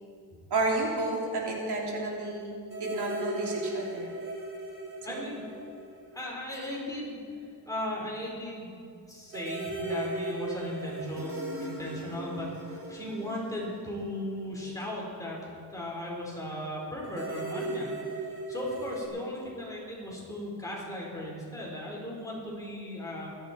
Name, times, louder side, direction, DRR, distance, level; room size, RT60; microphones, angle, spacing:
voice 1, 0.5-2.5 2.8-4.1 5.1-5.3, right 2 dB, 75° right, -2 dB, 3.1 m, -31 dB
sound 1, 2.7-6.5 6.7-6.8 9.3-14.7 17.0-19.1, right 2 dB, 35° right, 3.7 m, -37 dB
voice 2, 5.0-5.4 6.1-7.2 7.7-8.8 9.1-15.4 15.7-17.9 18.5-23.3, left 1 dB, 10° left, -4 dB, 4.4 m, -37 dB
20.5 x 13.5 x 4.5 m, 2.4 s
wide cardioid pair, 145°, 40 cm